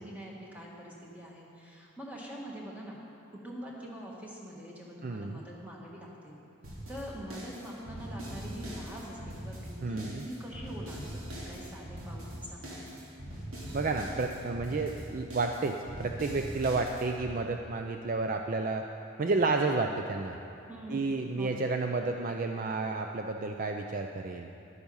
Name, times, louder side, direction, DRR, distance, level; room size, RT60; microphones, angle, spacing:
voice 1, 0.0-3.0 3.3-6.4 6.9-13.0 20.7-21.6, equal, 5° right, -3 dB, 1.5 m, -44 dB
voice 2, 5.0-5.4 9.8-10.3 13.7-18.9 19.2-20.4 20.9-24.5, right 3 dB, 40° right, 4 dB, 0.4 m, -31 dB
sound 1, 6.6-17.3, equal, 85° right, 2.6 m, -42 dB
11.5 x 9.4 x 5.5 m, 2.9 s
head